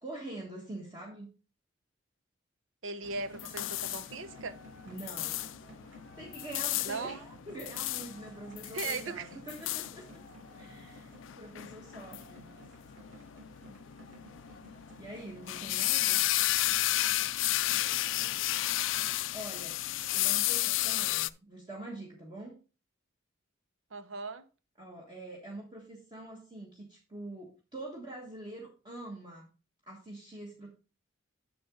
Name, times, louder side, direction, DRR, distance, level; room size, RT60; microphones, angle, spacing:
voice 1, 0.0-1.3 4.8-5.4 6.2-10.2 10.5-11.1 11.4-12.5 15.0-16.2 19.3-19.8 20.1-22.6 24.8-29.5 29.9-30.7, right 1 dB, 25° right, 1.4 m, -45 dB
voice 2, 2.8-4.5 6.8-7.2 8.6-9.3 23.9-24.4, right 4 dB, 85° right, 0.7 m, -38 dB
sound 1, 3.0-19.1, equal, 65° right, 3.2 m, -54 dB
sound 2, 3.1-21.3, left 16 dB, 75° left, 0.4 m, -33 dB
7.9 x 6.7 x 3.8 m
head